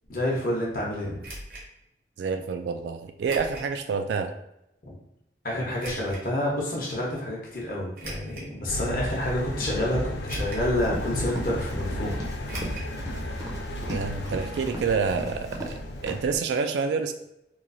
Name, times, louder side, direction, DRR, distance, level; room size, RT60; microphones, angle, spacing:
voice 1, 0.1-1.2 4.8-4.9 5.4-12.2, left 1 dB, 50° left, -3 dB, 0.8 m, -29 dB
sound 1, 1.2-1.7 3.2-3.7 4.3-4.4 5.8-6.2 7.9-8.5 9.2-9.3 10.3-10.8 11.0-11.1 12.5-12.9 13.2-13.3 13.6-13.7, right 1 dB, 55° right, 0.7 m, -39 dB
voice 2, 2.2-4.3 13.9-17.1, right 5 dB, 85° right, 7 dB, 0.3 m, -28 dB
sound 2, 8.7-16.4, left 1 dB, 80° left, 0.4 m, -34 dB
Run, 10.6-15.8 16.1-16.2, equal, 20° right, 0.5 m, -38 dB
3.1 x 2.3 x 2.5 m, 0.83 s
head